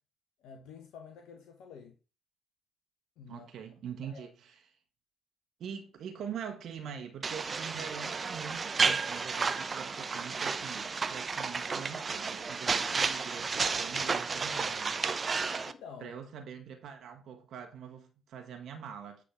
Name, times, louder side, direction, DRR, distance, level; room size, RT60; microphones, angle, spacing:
voice 1, 0.4-2.0 3.2-3.5 4.0-4.3 15.6-16.1, left 6 dB, 60° left, 1.1 m, -49 dB
voice 2, 3.3-4.7 5.6-15.0 16.0-19.2, right 7 dB, 55° right, 1.4 m, -44 dB
sound 1, 7.2-15.7, right 4 dB, 35° right, 0.7 m, -32 dB
9.6 x 3.9 x 6.0 m
figure-of-eight pair, 45°, 0 cm